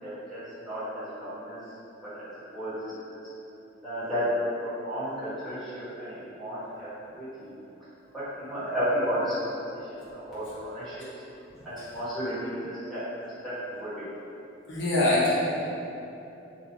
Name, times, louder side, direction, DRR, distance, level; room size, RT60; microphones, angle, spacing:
voice 1, 0.0-1.6 2.1-3.1 3.8-4.3 4.6-6.9 7.2-7.5 8.1-9.6 9.9-10.9 11.6-14.0, equal, ahead, -15 dB, 1.4 m, -33 dB
voice 2, 14.7-15.3, left 2 dB, 65° left, -9 dB, 0.9 m, -23 dB
3.0 x 2.7 x 2.9 m, 2.9 s
head